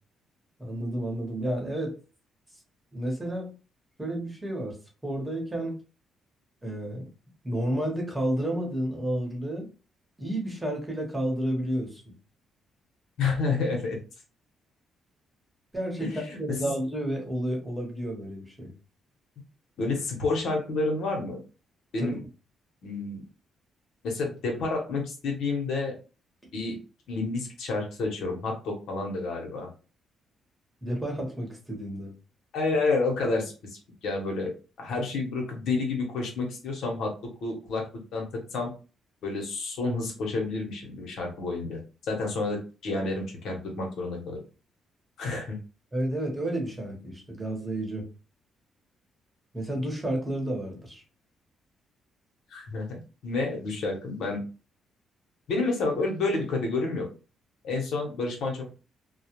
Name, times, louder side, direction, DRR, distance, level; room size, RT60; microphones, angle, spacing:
voice 1, 0.6-2.0 2.9-3.5 4.0-4.8 5.0-5.8 6.6-7.1 7.4-9.7 10.2-12.0 15.7-18.7 22.0-22.2 30.8-32.1 45.9-48.1 49.5-51.0, right 1 dB, 10° right, -1 dB, 1.0 m, -31 dB
voice 2, 13.2-14.0 16.0-16.6 19.8-21.4 21.9-22.2 22.8-23.2 24.0-25.9 26.5-26.8 27.1-29.7 32.5-34.5 34.8-37.1 37.4-37.9 38.1-38.7 39.2-44.4 45.2-45.6 52.5-54.4 55.5-57.1 57.6-58.7, left 3 dB, 75° left, 1 dB, 0.9 m, -29 dB
2.3 x 2.1 x 2.9 m, 0.33 s
cardioid pair, 90°, 0 cm